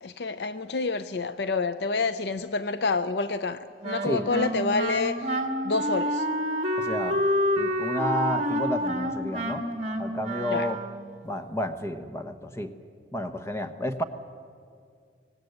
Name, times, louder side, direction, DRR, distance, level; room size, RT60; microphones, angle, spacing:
voice 1, 0.0-5.4 5.6-6.3 10.5-10.7, left 3 dB, 65° left, 0.6 m, -28 dB
Wind instrument woodwind instrument, 3.8-11.1, equal, 40° right, 1.7 m, -28 dB
voice 2, 6.8-7.2 7.6-9.7 10.0-10.8 11.2-12.7 13.1-14.0, left 1 dB, 15° left, 1.0 m, -31 dB
24.5 x 19.0 x 8.0 m
head